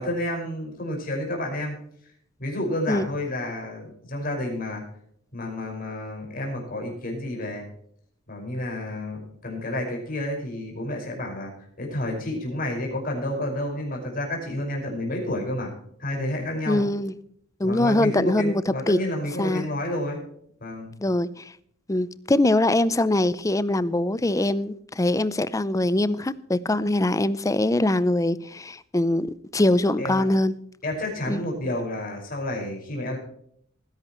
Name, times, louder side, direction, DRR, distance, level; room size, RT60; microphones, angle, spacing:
voice 1, 0.0-1.8 2.4-4.8 5.3-7.6 8.3-11.5 11.8-15.7 16.0-16.8 17.6-20.2 20.6-20.9 30.0-30.3 30.8-33.2, left 1 dB, 50° left, 5.4 m, -30 dB
voice 2, 16.7-17.1 17.6-19.0 19.4-19.7 21.0-21.5 21.9-29.3 29.5-30.5 31.3-31.4, left 1 dB, 15° left, 0.5 m, -23 dB
19.5 x 11.0 x 3.1 m
head